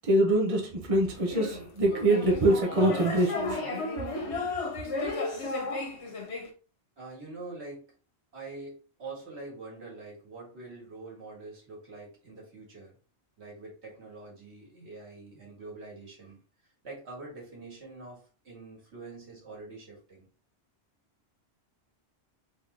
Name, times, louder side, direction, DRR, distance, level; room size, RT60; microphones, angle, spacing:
voice 1, 0.0-3.6, right 1 dB, 35° right, 0.9 m, -24 dB
sound 1, 1.2-6.5, left 2 dB, 80° left, 1.3 m, -33 dB
voice 2, 7.0-7.9 8.3-13.0 13.4-16.4 16.8-20.3, right 3 dB, 90° right, 2.0 m, -45 dB
3.6 x 3.0 x 3.8 m
omnidirectional pair, 1.1 m